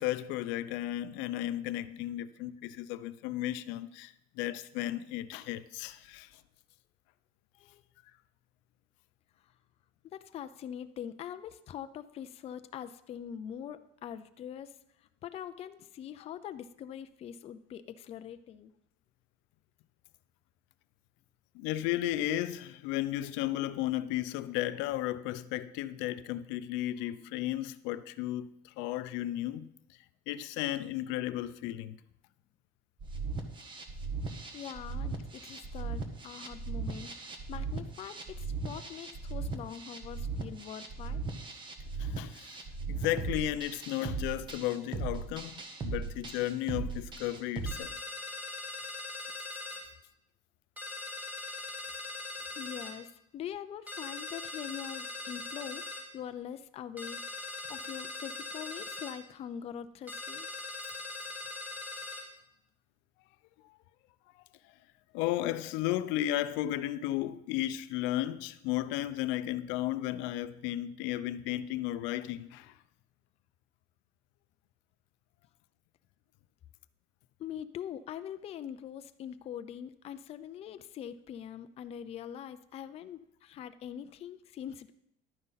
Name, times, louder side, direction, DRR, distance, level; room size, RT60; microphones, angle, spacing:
voice 1, 0.0-6.3 21.5-29.7 30.3-32.0 42.0-42.6 42.9-45.5 45.8-47.9 65.1-72.7, left 14 dB, 75° left, 0.6 m, -34 dB
voice 2, 10.0-14.7 15.2-18.7 34.5-41.2 52.6-55.8 56.1-57.2 57.7-60.5 77.4-84.9, left 9 dB, 30° left, 0.4 m, -43 dB
sound 1, 33.0-47.7, right 4 dB, 25° right, 1.1 m, -38 dB
sound 2, 47.7-49.8 50.8-52.9 53.9-56.1 57.0-59.2 60.1-62.3, left 2 dB, 10° right, 2.1 m, -41 dB
12.0 x 9.5 x 4.0 m
cardioid pair, 160°, 19 cm